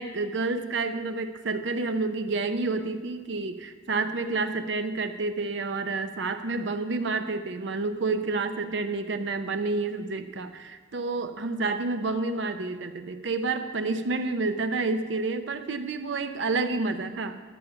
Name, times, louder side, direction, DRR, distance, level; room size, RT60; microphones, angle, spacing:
voice 1, 0.0-17.4, right 3 dB, 65° right, 8 dB, 0.6 m, -29 dB
13.0 x 6.9 x 5.2 m, 1.5 s
head